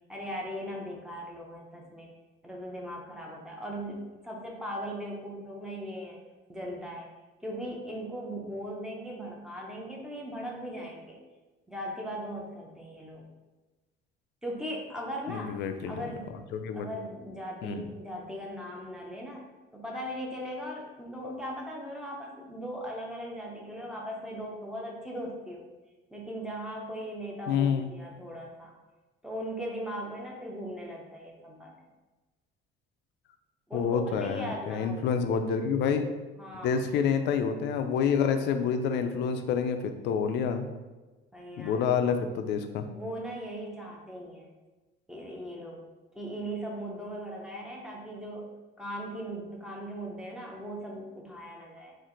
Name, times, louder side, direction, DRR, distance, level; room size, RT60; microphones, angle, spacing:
voice 1, 0.1-2.1 2.4-6.2 6.5-7.1 7.4-11.2 11.7-13.3 14.4-15.5 15.9-16.4 16.7-25.6 26.1-28.7 29.2-31.7 33.7-35.1 36.4-36.8 41.3-41.8 42.9-44.5 45.1-45.8 46.1-48.5 48.8-52.0, equal, 5° right, -2 dB, 0.6 m, -39 dB
voice 2, 15.3-16.0 16.5-16.9 17.6-17.8 27.5-27.9 33.7-36.1 36.6-40.7 41.6-42.9, left 6 dB, 65° left, 7 dB, 0.4 m, -28 dB
4.3 x 2.5 x 3.8 m, 1.2 s
cardioid pair, 165°, 19 cm